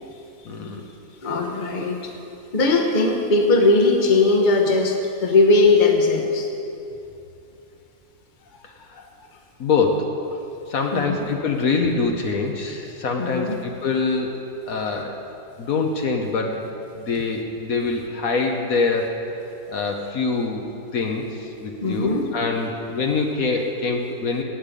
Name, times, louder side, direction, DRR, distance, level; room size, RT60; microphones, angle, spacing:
voice 1, 0.4-0.9 8.6-9.0 9.6-10.2 10.7-14.4 14.7-15.2 15.6-16.6 16.9-19.2 19.7-20.6 20.9-24.4, left 4 dB, 65° left, 2 dB, 1.4 m, -24 dB
voice 2, 1.2-2.1 2.5-6.5 9.0-9.1 10.9-11.2 13.2-13.6 21.8-22.3, left 3 dB, 35° left, 2 dB, 1.2 m, -19 dB
16.5 x 8.7 x 5.1 m, 2.8 s
omnidirectional pair, 1.7 m